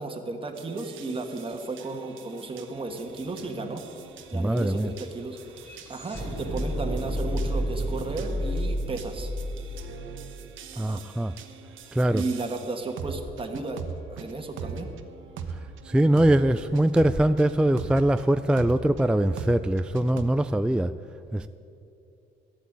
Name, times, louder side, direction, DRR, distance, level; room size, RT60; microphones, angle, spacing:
voice 1, 0.0-3.8 4.3-5.4 5.9-9.3 10.7-11.0 12.1-13.8 14.1-14.9, right 3 dB, 25° right, 3 dB, 1.5 m, -34 dB
sound 1, 0.5-18.2 18.6-20.2, right 5 dB, 80° right, 1.0 m, -41 dB
sound 2, 2.7-2.8 3.1-11.3, equal, 10° left, 2.6 m, -32 dB
voice 2, 4.3-4.9 10.8-11.3 11.9-12.2 15.8-20.9 21.3-21.5, right 1 dB, 5° right, 11 dB, 0.3 m, -22 dB
12.0 x 8.3 x 9.4 m, 2.7 s
cardioid pair, 90°, 20 cm